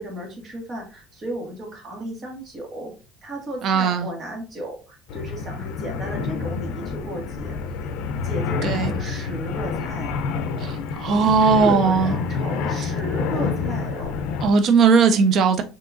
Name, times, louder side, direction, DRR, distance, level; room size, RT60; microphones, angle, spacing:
voice 1, 0.0-2.9 3.2-7.6 8.2-10.2 11.0-11.3 11.6-14.4, right 1 dB, 25° right, 1.6 m, -34 dB
voice 2, 3.6-4.1 8.6-8.9 10.6-12.2 14.4-15.6, right 5 dB, 40° right, 0.4 m, -18 dB
sound 1, 5.1-14.5, left 5 dB, 70° left, 0.5 m, -28 dB
5.7 x 2.9 x 2.5 m
cardioid pair, 165°, 0 cm